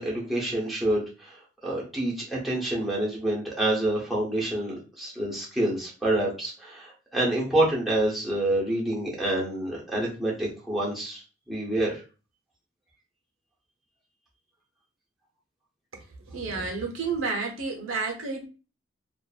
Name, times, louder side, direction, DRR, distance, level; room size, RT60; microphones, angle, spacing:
voice 1, 0.0-11.2 11.5-12.0, right 1 dB, ahead, -5 dB, 0.7 m, -27 dB
voice 2, 16.3-18.5, right 4 dB, 80° right, 1 dB, 0.8 m, -30 dB
2.5 x 2.4 x 2.4 m, 0.34 s
head